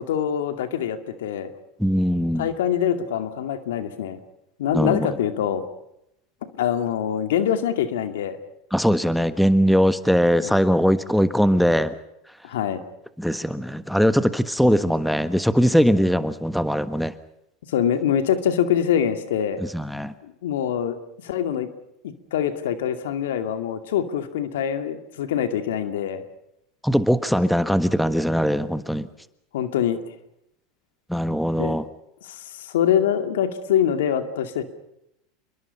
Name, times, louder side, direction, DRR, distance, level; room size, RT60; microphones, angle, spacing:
voice 1, 0.0-1.5 2.4-4.2 4.6-5.6 6.4-8.4 10.4-10.6 12.4-12.8 17.7-19.6 20.2-21.0 21.2-21.7 22.0-26.2 29.5-30.0 31.6-31.8 32.2-34.6, left 9 dB, 75° left, 8 dB, 2.3 m, -24 dB
voice 2, 1.8-2.5 4.7-5.1 8.7-12.0 13.2-17.1 19.6-20.1 26.8-29.1 31.1-31.8, equal, ahead, 12 dB, 1.4 m, -20 dB
28.0 x 22.5 x 5.6 m, 0.81 s
hypercardioid pair, 90°, 0 cm